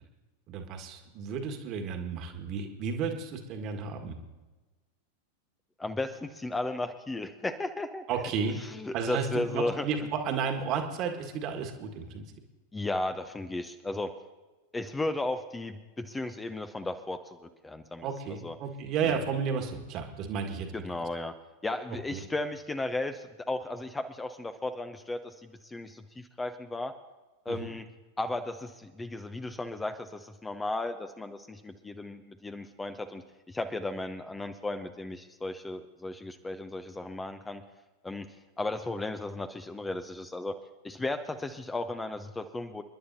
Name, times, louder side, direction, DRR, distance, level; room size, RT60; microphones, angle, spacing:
voice 1, 0.5-4.1 8.1-8.6 8.9-12.2 18.0-21.0 22.1-22.2 27.5-27.7, right 6 dB, 35° right, 4 dB, 1.6 m, -33 dB
voice 2, 5.8-8.0 8.6-9.9 12.7-14.1 14.7-18.1 18.4-18.6 19.0-19.2 20.7-21.3 21.6-26.9 27.5-27.8 28.2-33.2 33.5-37.6 38.0-38.3 38.6-40.5 40.8-42.8, left 2 dB, 10° left, 9 dB, 0.7 m, -35 dB
28.5 x 11.0 x 2.7 m, 1.2 s
figure-of-eight pair, 90°, 0 cm